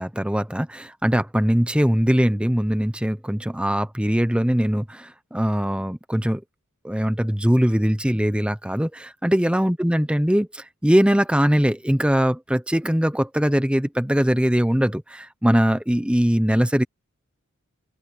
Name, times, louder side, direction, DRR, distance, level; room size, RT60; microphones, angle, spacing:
voice 1, 0.0-6.4 6.8-16.8, equal, 5° right, 0.9 m, -21 dB
open air
head